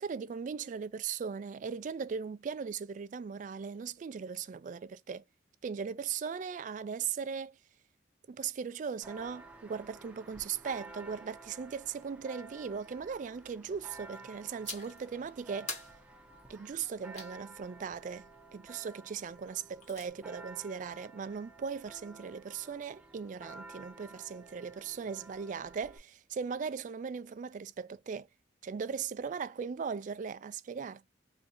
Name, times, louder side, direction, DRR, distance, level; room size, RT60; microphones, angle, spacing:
voice 1, 0.0-5.2 5.6-7.6 8.3-15.8 16.5-18.3 18.5-28.3 28.6-31.1, right 6 dB, 45° right, 0.3 m, -38 dB
Church bell, 9.0-26.0, right 3 dB, 10° right, 0.6 m, -52 dB
sound 1, 14.6-15.1 15.7-17.4 19.5-20.1, left 3 dB, 40° left, 1.2 m, -44 dB
3.6 x 2.6 x 2.7 m
head